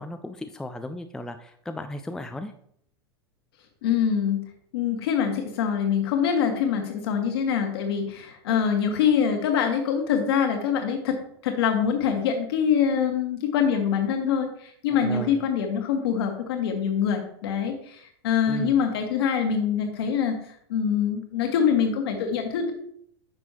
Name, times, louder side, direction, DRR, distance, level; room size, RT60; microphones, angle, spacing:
voice 1, 0.0-2.5 15.0-15.4 18.5-18.8, left 1 dB, 5° left, 7 dB, 0.5 m, -35 dB
voice 2, 3.8-4.4 4.7-11.2 11.4-20.4 20.7-22.7, left 7 dB, 60° left, 4 dB, 1.7 m, -24 dB
9.5 x 6.1 x 3.0 m, 0.66 s
figure-of-eight pair, 90°, 14 cm